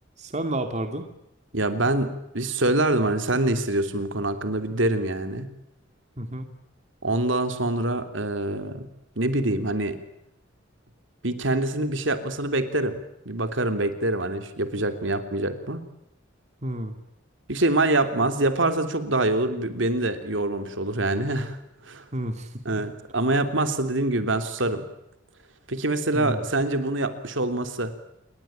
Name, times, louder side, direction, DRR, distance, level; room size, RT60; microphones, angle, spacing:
voice 1, 0.2-1.1 6.2-6.5 16.6-17.0 22.1-22.9 26.1-26.4, right 1 dB, 35° right, 7 dB, 2.4 m, -31 dB
voice 2, 1.5-5.5 7.0-8.9 9.2-10.0 11.2-13.0 13.2-15.8 17.5-21.6 21.9-22.0 22.6-24.8 25.7-27.9, right 2 dB, 70° right, 8 dB, 3.2 m, -25 dB
29.0 x 22.5 x 8.8 m, 0.82 s
head